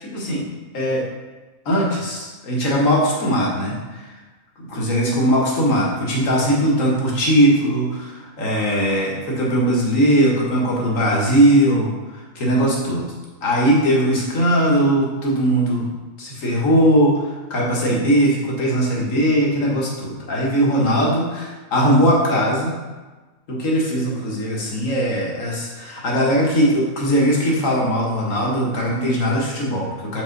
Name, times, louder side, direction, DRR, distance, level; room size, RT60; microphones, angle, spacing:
voice 1, 0.0-0.5 0.7-1.1 1.7-4.1 4.6-13.1 13.4-15.9 16.2-22.7 23.5-30.2, equal, 60° left, -3 dB, 1.8 m, -19 dB
6.6 x 5.5 x 3.9 m, 1.3 s
omnidirectional pair, 1.5 m